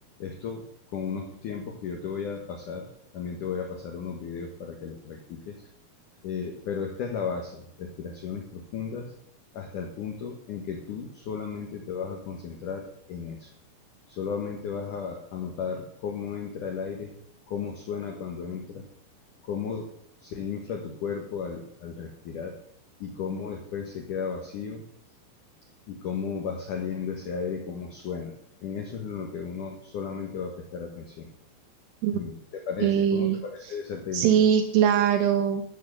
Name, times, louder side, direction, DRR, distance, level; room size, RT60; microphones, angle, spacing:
voice 1, 0.2-0.6 0.9-2.9 3.1-5.6 6.2-9.1 9.5-13.5 14.1-17.1 17.5-18.9 19.4-19.9 20.2-22.6 23.0-24.8 25.9-31.3 32.1-34.3, left 6 dB, 80° left, 2 dB, 1.8 m, -34 dB
voice 2, 32.8-33.4 34.1-35.6, right 9 dB, 85° right, 6 dB, 3.3 m, -22 dB
13.5 x 6.3 x 8.0 m, 0.69 s
omnidirectional pair, 5.9 m